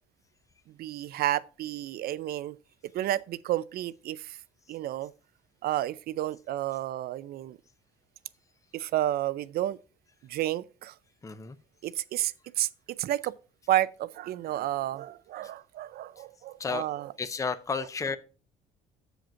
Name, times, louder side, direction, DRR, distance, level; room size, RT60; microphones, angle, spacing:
voice 1, 0.8-2.6 2.9-4.4 4.7-5.1 5.6-7.6 8.7-9.8 10.2-10.9 11.8-12.7 13.0-13.3 13.7-17.1, right 13 dB, 65° right, 0.5 m, -31 dB
voice 2, 11.2-11.6 16.2-16.3 16.6-16.9 17.2-18.2, left 5 dB, 20° left, 0.6 m, -32 dB
7.7 x 5.0 x 5.7 m
cardioid pair, 110°, 17 cm